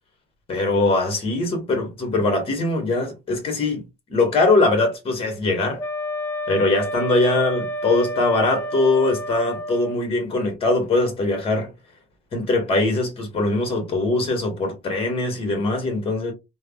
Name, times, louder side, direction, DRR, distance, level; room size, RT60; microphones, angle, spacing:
voice 1, 0.5-3.8 4.1-5.8 6.5-11.7 12.3-16.3, left 2 dB, 35° left, 1.1 m, -21 dB
Wind instrument woodwind instrument, 5.8-10.0, equal, 10° left, 0.3 m, -30 dB
3.3 x 2.0 x 2.3 m
cardioid pair, 120°, 17 cm